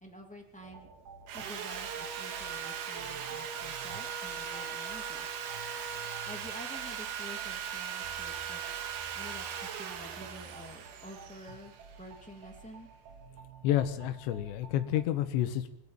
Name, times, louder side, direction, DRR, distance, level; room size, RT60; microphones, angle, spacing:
voice 1, 0.0-0.9 1.3-5.3 6.3-8.6 9.1-9.5 9.7-12.9, equal, 5° left, 1 dB, 0.7 m, -49 dB
sound 1, 0.6-15.1, right 5 dB, 50° right, 4.4 m, -52 dB
Sawing, 1.3-12.3, right 8 dB, 65° right, 3.4 m, -39 dB
voice 2, 13.6-15.7, left 12 dB, 80° left, 7 dB, 3.4 m, -29 dB
24.0 x 12.0 x 8.9 m, 0.76 s
omnidirectional pair, 5.1 m